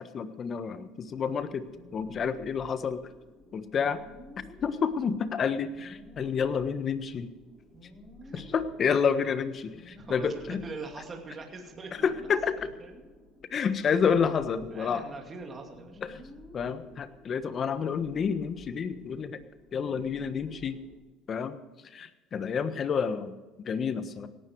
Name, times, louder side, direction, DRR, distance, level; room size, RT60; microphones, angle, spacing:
voice 1, 0.0-1.6 1.9-3.0 3.5-4.0 4.6-7.3 8.3-10.6 12.0-12.5 13.5-15.0 16.0-16.2 16.5-19.4 19.7-20.8 21.3-21.6 21.9-23.3 23.6-24.3, left 6 dB, 40° left, 11 dB, 1.4 m, -29 dB
sound 1, 1.0-21.0, left 1 dB, 10° left, 5.8 m, -51 dB
voice 2, 8.2-8.6 10.0-12.1 12.6-13.0 13.8-13.9 14.7-16.0, right 3 dB, 30° right, 2 dB, 2.6 m, -42 dB
17.5 x 12.5 x 4.8 m, 1.2 s
supercardioid pair, 95°, 0 cm